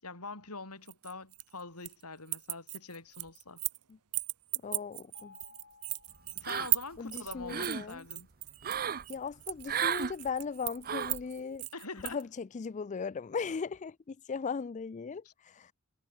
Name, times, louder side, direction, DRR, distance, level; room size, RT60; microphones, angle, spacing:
voice 1, 0.0-3.6 6.4-8.3 11.7-12.2 15.2-15.3, left 3 dB, 85° left, 7.2 m, -44 dB
sound 1, 0.9-2.0 2.3-3.8 4.1-12.2, right 21 dB, 80° right, 1.0 m, -37 dB
voice 2, 4.6-5.3 7.0-8.0 9.1-11.7 12.0-15.7, left 5 dB, 35° left, 0.4 m, -38 dB
Mallet percussion, 5.1-7.1, left 4 dB, 55° left, 7.3 m, -59 dB
sound 2, 6.4-7.0 7.3-7.9 8.6-9.0 9.7-10.1 10.8-11.2, right 8 dB, 40° right, 0.8 m, -33 dB
head